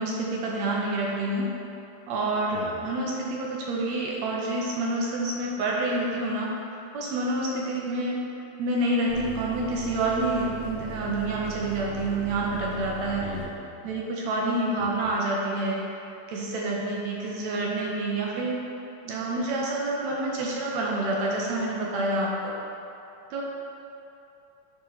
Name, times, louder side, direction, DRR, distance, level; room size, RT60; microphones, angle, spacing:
voice 1, 0.0-1.5 2.1-8.2 8.6-13.3 13.8-15.8 16.3-18.6 19.1-22.5 23.3-23.4, right 2 dB, 70° right, -2 dB, 1.7 m, -28 dB
voice 2, 2.5-2.9 13.2-14.0 14.8-15.1, left 5 dB, 75° left, 0 dB, 1.9 m, -42 dB
sound 1, 9.1-13.5, right 5 dB, 90° right, 1.1 m, -39 dB
10.0 x 4.3 x 3.9 m, 2.7 s
omnidirectional pair, 3.8 m